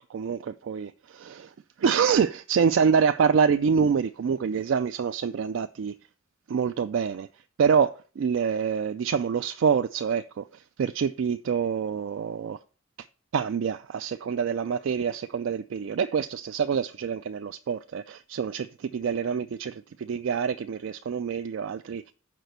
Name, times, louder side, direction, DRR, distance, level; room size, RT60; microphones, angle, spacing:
voice 1, 0.1-1.5 1.8-5.9 6.5-7.3 7.6-12.6 13.3-22.1, right 6 dB, 70° right, 0.3 m, -26 dB
6.1 x 5.0 x 6.6 m
head